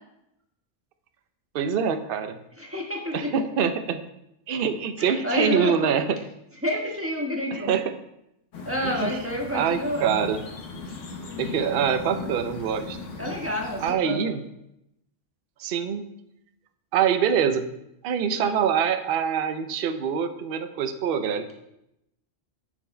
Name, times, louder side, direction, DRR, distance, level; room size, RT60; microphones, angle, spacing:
voice 1, 1.5-2.4 3.1-4.0 4.5-6.2 7.5-7.9 8.8-9.2 9.5-10.4 11.4-13.0 13.8-14.4 15.6-16.0 16.9-17.7 18.0-21.6, right 7 dB, 55° right, 9 dB, 0.8 m, -25 dB
voice 2, 2.6-3.3 5.0-5.9 6.6-7.7 8.6-10.1 13.2-14.3 18.3-18.6, left 1 dB, 10° right, -1 dB, 1.3 m, -29 dB
sound 1, 8.5-13.9, left 4 dB, 85° left, 1.4 m, -38 dB
9.8 x 4.6 x 4.3 m, 0.83 s
omnidirectional pair, 1.2 m